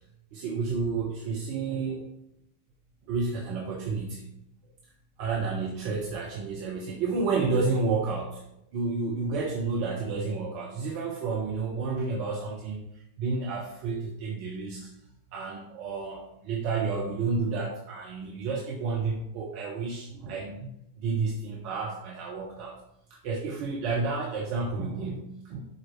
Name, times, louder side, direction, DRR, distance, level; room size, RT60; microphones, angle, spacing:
voice 1, 0.3-2.0 3.1-4.3 5.2-8.4 8.7-12.9 13.2-14.9 15.3-20.7 21.0-22.8 23.1-25.6, right 4 dB, 45° right, -1 dB, 1.2 m, -30 dB
11.0 x 4.6 x 3.2 m, 0.79 s
figure-of-eight pair, 90°, 0 cm